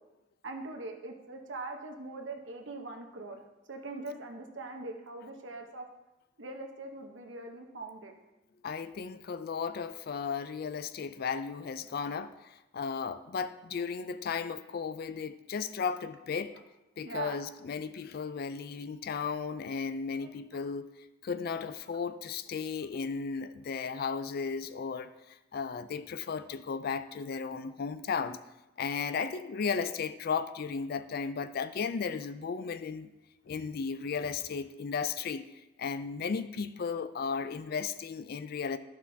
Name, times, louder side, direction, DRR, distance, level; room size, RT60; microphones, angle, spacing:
voice 1, 0.4-3.4 3.7-5.9 6.4-8.1 17.0-17.4 20.2-20.3, right 3 dB, 75° right, 3 dB, 1.0 m, -42 dB
voice 2, 8.6-16.6 17.0-20.9 21.2-28.4 28.8-33.1 33.5-35.4 35.8-38.8, left 5 dB, 55° left, 13 dB, 0.4 m, -35 dB
11.5 x 6.0 x 2.8 m, 0.99 s
head